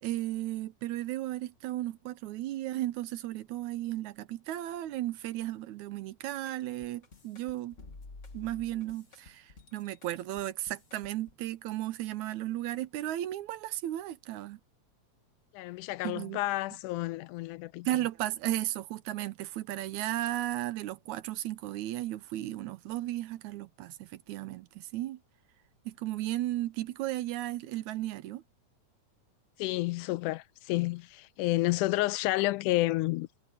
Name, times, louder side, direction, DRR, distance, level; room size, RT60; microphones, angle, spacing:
voice 1, 0.0-7.8 8.3-14.6 16.0-16.4 17.9-25.2 25.9-28.4, right 15 dB, 75° right, 2.0 m, -35 dB
sound 1, 6.2-11.3, left 3 dB, 30° left, 1.5 m, -52 dB
voice 2, 15.5-17.9 29.6-33.3, left 19 dB, 85° left, 2.0 m, -30 dB
omnidirectional pair, 3.6 m